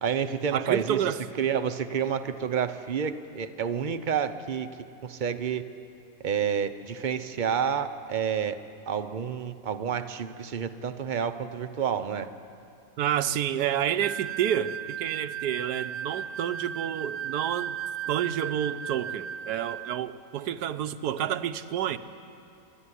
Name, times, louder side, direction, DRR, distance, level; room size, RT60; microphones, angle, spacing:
voice 1, 0.0-1.0 1.4-4.7 5.0-5.6 6.2-8.6 8.9-12.3, right 7 dB, 45° right, 10 dB, 0.6 m, -29 dB
voice 2, 0.5-1.2 13.0-17.8 18.1-22.0, right 10 dB, 85° right, 11 dB, 1.3 m, -29 dB
sound 1, 14.0-20.1, right 9 dB, 60° right, 1.0 m, -36 dB
25.5 x 12.5 x 9.9 m, 2.7 s
omnidirectional pair, 1.7 m